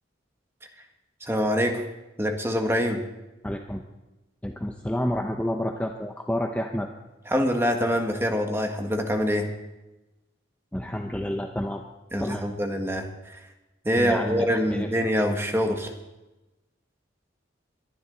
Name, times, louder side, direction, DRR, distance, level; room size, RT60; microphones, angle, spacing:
voice 1, 1.2-1.8 2.2-3.0 7.3-9.5 12.1-13.4 13.8-15.9, equal, 15° right, 3 dB, 1.5 m, -25 dB
voice 2, 3.4-3.8 4.4-6.9 10.7-11.8 12.2-12.4 14.0-14.9, left 1 dB, 5° left, 3 dB, 0.7 m, -29 dB
22.5 x 11.0 x 4.0 m, 1.0 s
head